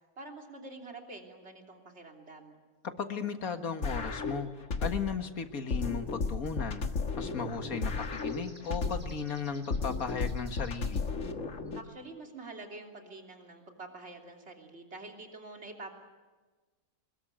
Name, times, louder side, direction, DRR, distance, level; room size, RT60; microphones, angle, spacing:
voice 1, 0.2-2.6 11.8-15.9, right 2 dB, 50° right, 2 dB, 3.5 m, -46 dB
voice 2, 2.8-4.5 4.8-6.8 7.2-11.1, left 6 dB, 85° left, 7 dB, 2.1 m, -36 dB
sound 1, 3.8-5.2 5.7-9.2 9.7-11.8, left 4 dB, 65° left, 1.8 m, -34 dB
sound 2, 4.4-4.6 4.9-5.1 5.5-5.6 7.7-11.2 11.7-11.8 12.0-12.5 13.6-13.7, right 1 dB, 35° right, 4.2 m, -59 dB
27.0 x 21.5 x 9.2 m, 1.3 s
omnidirectional pair, 1.5 m